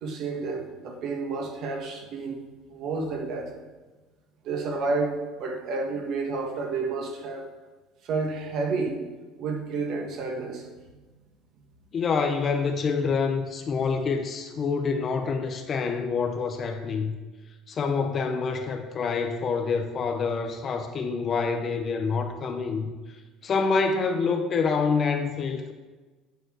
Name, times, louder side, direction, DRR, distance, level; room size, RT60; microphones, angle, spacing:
voice 1, 0.0-2.4 2.7-3.5 4.4-7.5 8.0-9.0 9.4-10.7, right 3 dB, 45° right, 2 dB, 1.4 m, -30 dB
voice 2, 11.9-17.2 17.7-22.9 23.4-25.7, left 5 dB, 30° left, 6 dB, 0.6 m, -27 dB
9.0 x 4.6 x 6.1 m, 1.3 s
cardioid pair, 160°, 0 cm